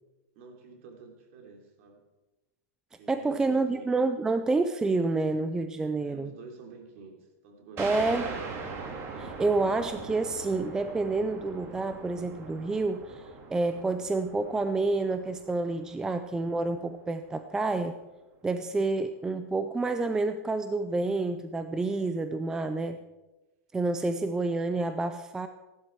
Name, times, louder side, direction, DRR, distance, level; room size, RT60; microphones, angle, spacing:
voice 1, 0.3-2.0 3.0-3.9 6.0-8.5 22.7-23.0, right 4 dB, 50° right, 2 dB, 3.2 m, -49 dB
voice 2, 3.1-6.4 7.8-8.3 9.2-18.0 18.4-23.0 23.7-25.5, right 3 dB, 5° right, 9 dB, 0.4 m, -28 dB
sound 1, 7.8-17.0, right 4 dB, 30° right, 2.4 m, -41 dB
15.5 x 11.5 x 4.7 m, 1.1 s
supercardioid pair, 160°, 9 cm